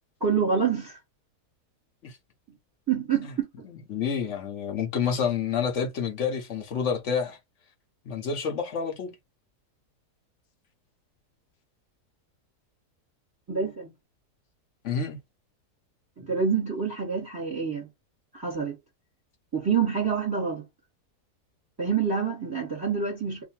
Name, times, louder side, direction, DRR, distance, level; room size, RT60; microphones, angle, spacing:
voice 1, 0.2-1.0 2.9-3.5 13.5-13.9 16.2-17.9 18.3-18.8 19.5-20.6 21.8-23.4, right 6 dB, 15° right, 1.2 m, -27 dB
voice 2, 3.6-7.4 8.1-9.1 14.8-15.2, left 6 dB, 55° left, 1.0 m, -29 dB
2.7 x 2.5 x 4.2 m
omnidirectional pair, 1.7 m